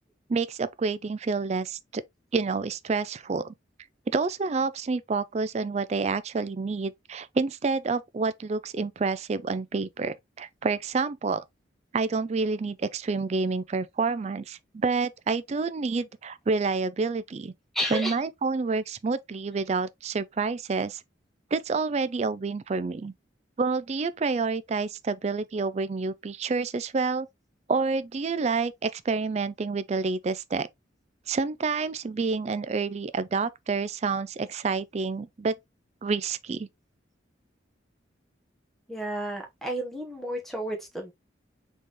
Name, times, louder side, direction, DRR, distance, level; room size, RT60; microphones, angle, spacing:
voice 1, 0.3-2.0 2.3-3.5 4.1-11.4 11.9-17.5 17.9-21.0 21.5-23.1 23.6-27.3 27.7-30.7 31.3-35.5 36.0-36.7, right 4 dB, 35° right, 0.3 m, -28 dB
voice 2, 17.7-18.2 38.9-41.1, equal, ahead, 1.2 m, -32 dB
4.1 x 3.7 x 3.0 m
head